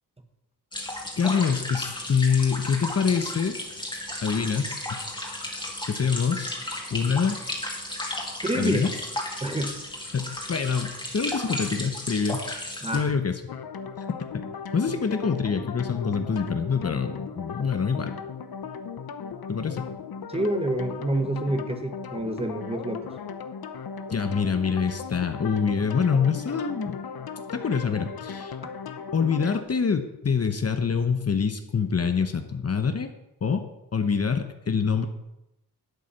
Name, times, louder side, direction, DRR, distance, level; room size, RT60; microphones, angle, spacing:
sound 1, 0.7-13.0, left 1 dB, 10° left, 2.4 m, -34 dB
voice 1, 1.2-3.6 4.2-5.1 5.8-6.6 6.9-7.4 8.6-8.9 10.1-12.6 12.9-13.4 14.3-14.4 14.7-18.1 19.5-19.9 24.1-27.0 27.5-28.6 29.1-33.1 33.4-33.6 33.9-35.1, left 6 dB, 40° left, 7 dB, 1.0 m, -25 dB
voice 2, 8.4-8.8 9.4-9.8 12.8-13.2 20.3-23.1, right 1 dB, 15° right, 6 dB, 1.3 m, -28 dB
sound 2, 13.5-29.6, left 6 dB, 65° left, 0.9 m, -37 dB
11.5 x 8.3 x 5.8 m, 0.89 s
wide cardioid pair, 105°, 39 cm